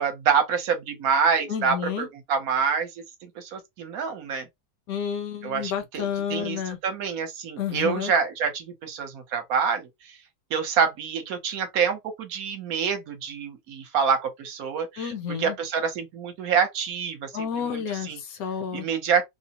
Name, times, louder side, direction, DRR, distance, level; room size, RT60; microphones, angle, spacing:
voice 1, 0.0-2.9 3.2-4.5 5.4-9.9 10.5-18.2 18.7-19.3, right 6 dB, 65° right, 1.1 m, -26 dB
voice 2, 1.5-2.1 4.9-6.8 7.6-8.1 15.0-15.6 17.3-18.9, left 7 dB, 70° left, 0.9 m, -30 dB
2.8 x 2.0 x 2.8 m
omnidirectional pair, 1.8 m